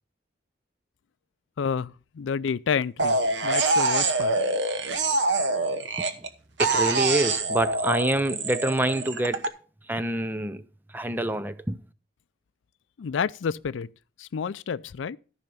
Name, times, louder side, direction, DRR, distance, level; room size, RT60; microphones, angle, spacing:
voice 1, 1.6-4.4 13.0-13.9 14.2-15.2, left 6 dB, 90° left, 0.4 m, -30 dB
sound 1, 3.0-6.3 6.6-9.5, right 3 dB, 70° right, 1.1 m, -25 dB
voice 2, 6.6-9.5 9.9-10.6 10.9-11.8, right 1 dB, 10° right, 0.5 m, -26 dB
14.0 x 5.7 x 5.2 m
head